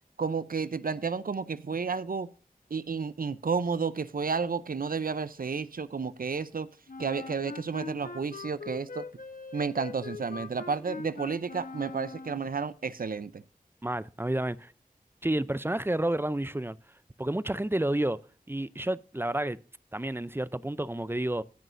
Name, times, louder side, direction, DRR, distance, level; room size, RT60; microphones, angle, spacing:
voice 1, 0.2-2.3 2.7-6.7 7.0-9.0 9.5-13.4, right 5 dB, 70° right, 0.6 m, -31 dB
Wind instrument woodwind instrument, 6.9-12.6, left 4 dB, 65° left, 1.1 m, -42 dB
voice 2, 13.8-14.7 15.2-16.8 17.2-18.2 18.5-19.6 19.9-21.4, right 1 dB, 15° right, 0.5 m, -30 dB
18.0 x 6.2 x 2.6 m
wide cardioid pair, 50°, 15 cm